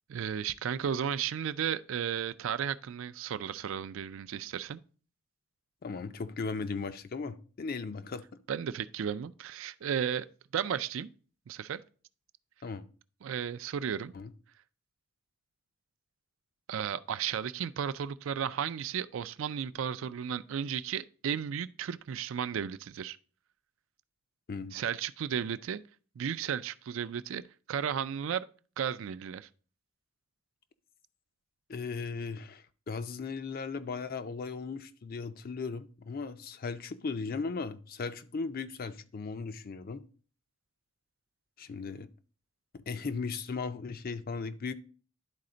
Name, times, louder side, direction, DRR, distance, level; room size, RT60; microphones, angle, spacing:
voice 1, 0.1-4.8 8.5-10.3 10.5-11.1 11.5-11.8 13.2-14.1 16.7-23.2 24.7-25.8 26.2-27.4 27.7-28.5 28.8-29.5, right 8 dB, 65° right, 0.4 m, -34 dB
voice 2, 5.8-8.2 12.6-12.8 14.1-14.3 24.5-24.7 31.7-40.0 41.6-42.1 42.9-44.7, left 4 dB, 45° left, 0.5 m, -37 dB
11.0 x 4.1 x 3.8 m
head